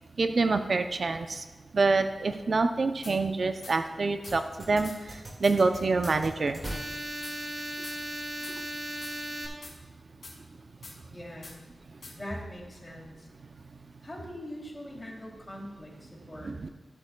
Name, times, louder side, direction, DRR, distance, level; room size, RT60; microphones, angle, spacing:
voice 1, 0.2-1.5 1.7-6.6 16.4-16.7, right 3 dB, 60° right, 7 dB, 0.5 m, -26 dB
sound 1, 3.0-3.2 3.6-3.8 4.2-4.4 4.8-5.0 5.4-5.6 6.0-6.2 6.6-6.8 7.2-7.4 7.8-8.0 8.4-8.6 9.0-9.2 9.6-9.8 10.2-10.4 10.8-11.0 11.4-11.6 12.0-12.2, left 3 dB, 80° left, 2.1 m, -45 dB
sound 2, 4.3-9.5, right 1 dB, 40° right, 1.9 m, -37 dB
voice 2, 11.1-11.6 12.1-13.3 14.0-16.5, equal, 25° left, -2 dB, 2.8 m, -42 dB
14.5 x 8.2 x 2.3 m, 1.2 s
wide cardioid pair, 70°, 0 cm